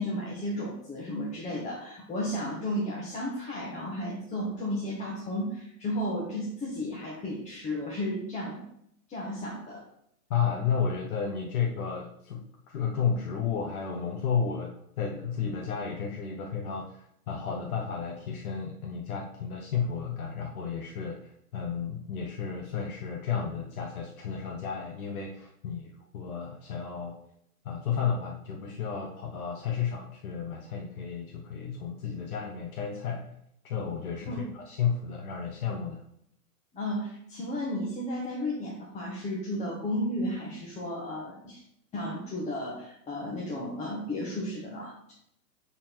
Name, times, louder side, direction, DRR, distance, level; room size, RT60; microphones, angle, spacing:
voice 1, 0.0-8.7 9.1-9.8 34.3-34.5 36.7-41.6 41.9-45.1, left 1 dB, 15° left, -4 dB, 1.3 m, -33 dB
voice 2, 10.3-27.2 27.6-33.3 33.6-36.0, left 6 dB, 70° left, 1 dB, 1.2 m, -32 dB
7.4 x 4.3 x 4.5 m, 0.72 s
hypercardioid pair, 140°, 45 cm